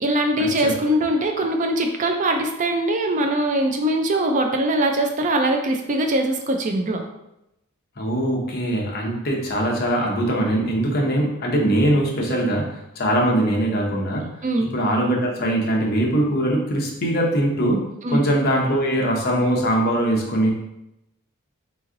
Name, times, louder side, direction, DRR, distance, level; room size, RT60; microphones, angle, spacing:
voice 1, 0.0-7.0 14.4-14.7 18.0-18.3, right 1 dB, 35° right, 4 dB, 0.4 m, -22 dB
voice 2, 8.0-14.3 14.6-17.8 18.1-20.5, right 1 dB, 45° left, -1 dB, 0.8 m, -21 dB
3.6 x 3.0 x 3.7 m, 0.88 s
head